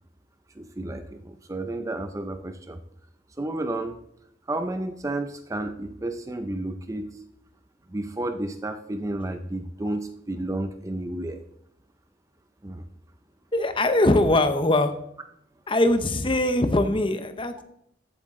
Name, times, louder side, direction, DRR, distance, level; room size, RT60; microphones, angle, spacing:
voice 1, 0.6-2.8 3.4-4.0 4.5-7.1 7.9-11.4 12.6-12.8, right 1 dB, 15° right, 8 dB, 0.5 m, -31 dB
voice 2, 13.5-14.9 15.7-17.6, left 1 dB, 25° left, 9 dB, 0.8 m, -21 dB
14.0 x 8.1 x 3.7 m, 0.74 s
head